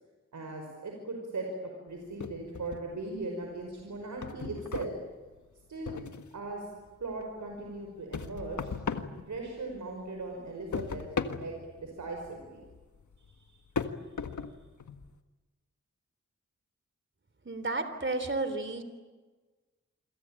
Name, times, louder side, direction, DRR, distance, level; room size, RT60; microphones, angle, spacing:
voice 1, 0.3-5.0 5.7-6.0 6.3-6.7 7.0-8.7 9.3-12.6 13.3-13.6 14.0-14.1, right 2 dB, 85° right, 1 dB, 5.5 m, -39 dB
sound 1, 2.2-3.2 3.6-6.5 6.9-9.9 10.2-15.1, left 5 dB, 80° left, 1.7 m, -38 dB
voice 2, 17.5-18.8, right 2 dB, 40° right, 10 dB, 3.4 m, -32 dB
28.5 x 23.5 x 8.9 m, 1.3 s
wide cardioid pair, 60°, 29 cm